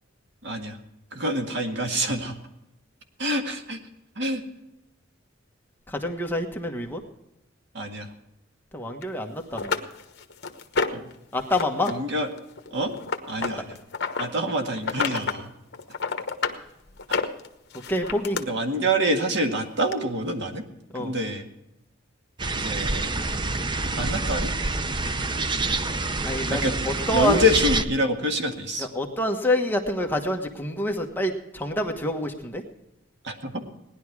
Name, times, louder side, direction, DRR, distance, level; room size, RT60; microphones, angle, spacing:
voice 1, 0.4-0.8 1.1-2.4 3.2-3.8 4.2-4.4 7.7-8.1 10.9-11.1 11.9-12.3 12.7-12.9 13.3-13.8 14.2-15.5 17.1-17.2 18.3-20.6 20.9-21.5 22.5-23.1 23.9-24.5 26.5-26.7 27.1-28.9 33.2-33.6, equal, 60° right, 4 dB, 1.9 m, -26 dB
voice 2, 5.9-7.0 8.7-9.8 11.3-11.9 17.9-18.4 20.9-21.1 26.2-27.4 28.8-32.6, left 1 dB, 10° left, 2 dB, 1.3 m, -27 dB
sound 1, 9.0-9.1 9.6-11.1 11.5-11.9 12.2-14.3 14.8-15.4 15.7-16.6 17.0-18.4 19.4-19.5 19.9-20.0, left 5 dB, 55° left, 1.2 m, -29 dB
sound 2, 22.4-27.9, right 3 dB, 25° right, 0.6 m, -27 dB
18.5 x 11.0 x 4.8 m, 0.90 s
head